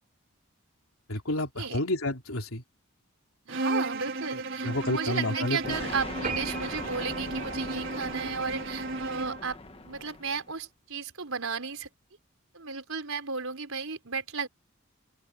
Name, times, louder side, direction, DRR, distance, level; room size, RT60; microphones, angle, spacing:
voice 1, 1.1-2.6 4.6-5.8, left 1 dB, 80° left, 3.6 m, -30 dB
Bowed string instrument, 3.5-9.5, right 3 dB, 60° right, 1.8 m, -34 dB
voice 2, 3.5-9.6 9.8-11.9 12.5-14.5, right 5 dB, 80° right, 4.2 m, -34 dB
sound 1, 5.6-10.5, left 2 dB, 30° left, 1.4 m, -40 dB
sound 2, 6.2-9.0 9.5-9.7 10.1-10.2 10.5-10.6 10.8-10.9, right 4 dB, 40° right, 6.0 m, -40 dB
open air
head